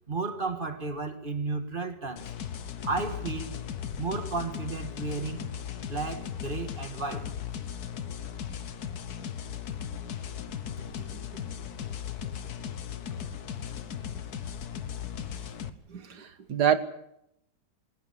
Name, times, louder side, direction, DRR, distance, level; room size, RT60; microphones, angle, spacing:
voice 1, 0.1-2.3 2.8-3.6 4.0-5.5 5.8-7.3, right 3 dB, 30° right, 1.9 m, -33 dB
sound 1, 2.2-15.7, left 8 dB, 60° left, 1.6 m, -37 dB
voice 2, 15.9-16.8, right 9 dB, 65° right, 2.0 m, -26 dB
20.5 x 18.5 x 8.6 m
omnidirectional pair, 1.9 m